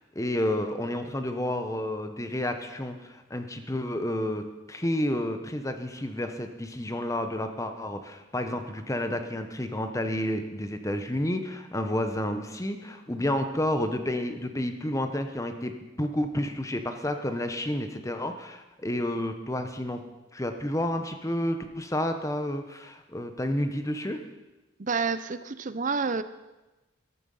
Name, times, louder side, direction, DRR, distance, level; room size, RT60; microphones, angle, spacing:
voice 1, 0.0-20.0 20.3-24.2, left 1 dB, 15° left, 7 dB, 1.0 m, -30 dB
voice 2, 24.8-26.2, right 5 dB, 40° right, 14 dB, 0.6 m, -29 dB
14.0 x 13.0 x 5.5 m, 1.1 s
head